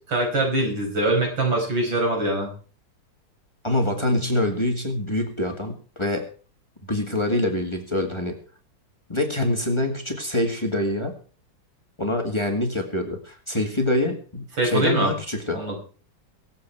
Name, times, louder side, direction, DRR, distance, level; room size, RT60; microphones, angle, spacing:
voice 1, 0.1-2.5 14.6-15.1 15.5-15.8, right 2 dB, 90° right, 1 dB, 5.8 m, -23 dB
voice 2, 3.6-6.3 6.8-8.4 9.1-11.1 12.0-15.6, left 1 dB, 15° left, 4 dB, 2.0 m, -25 dB
23.5 x 8.0 x 4.6 m, 0.39 s
omnidirectional pair, 2.0 m